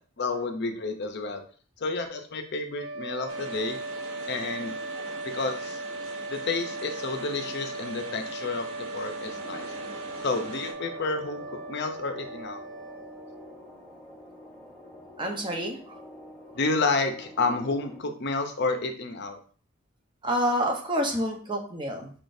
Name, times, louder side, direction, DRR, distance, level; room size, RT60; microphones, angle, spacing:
voice 1, 0.2-1.4 1.8-3.8 4.3-4.7 5.3-5.8 6.3-9.7 10.2-12.6 16.5-19.4, left 3 dB, 55° left, 6 dB, 0.6 m, -30 dB
sound 1, 2.7-13.6, right 2 dB, 60° right, 2.3 m, -38 dB
sound 2, 3.3-10.7, right 1 dB, 85° right, 1.3 m, -43 dB
sound 3, 9.2-18.0, left 1 dB, 5° left, 1.0 m, -47 dB
voice 2, 15.2-16.0 20.2-22.1, equal, 25° right, 1 dB, 0.9 m, -28 dB
5.4 x 3.7 x 2.6 m, 0.43 s
head